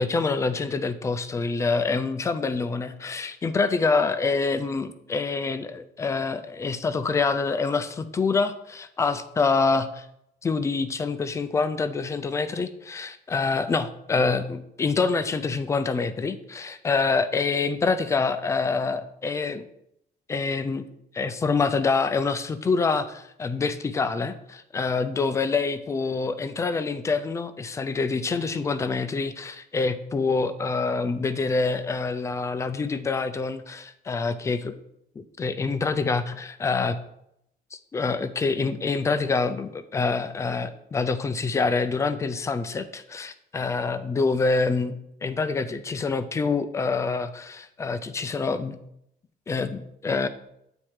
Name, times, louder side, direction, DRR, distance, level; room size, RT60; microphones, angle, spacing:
voice 1, 0.0-10.1 10.4-19.6 20.3-20.8 21.1-34.8 35.2-37.0 37.7-44.9 45.2-48.8 49.5-50.3, left 4 dB, 15° left, 12 dB, 0.4 m, -26 dB
8.8 x 4.4 x 4.8 m, 0.78 s
cardioid pair, 175°, 17 cm